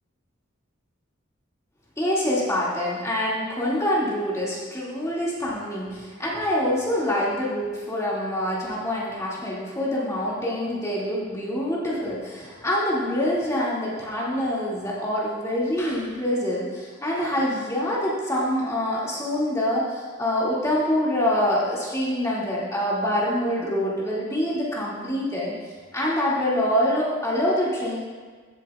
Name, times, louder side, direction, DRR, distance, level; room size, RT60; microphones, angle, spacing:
voice 1, 2.0-25.5 25.9-28.0, left 1 dB, 15° left, -7 dB, 2.0 m, -25 dB
15.5 x 7.7 x 2.3 m, 1.5 s
head